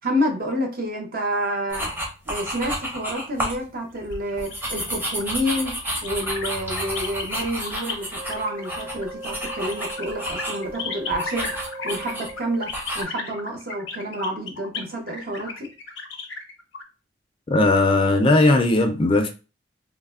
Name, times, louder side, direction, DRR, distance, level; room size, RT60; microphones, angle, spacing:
voice 1, 0.0-1.9 2.3-11.5 11.8-15.7, equal, 50° right, 0.7 m, -29 dB
sound 1, 1.7-3.6 4.0-10.7 11.1-12.3 12.7-13.0, equal, 10° right, 0.6 m, -31 dB
sound 2, 4.0-7.9 8.3-16.8, left 5 dB, 85° left, 0.6 m, -35 dB
Wind instrument woodwind instrument, 8.1-12.8, right 2 dB, 75° right, 1.5 m, -39 dB
voice 2, 17.5-19.3, left 2 dB, 30° left, 0.4 m, -18 dB
3.2 x 2.0 x 2.4 m
head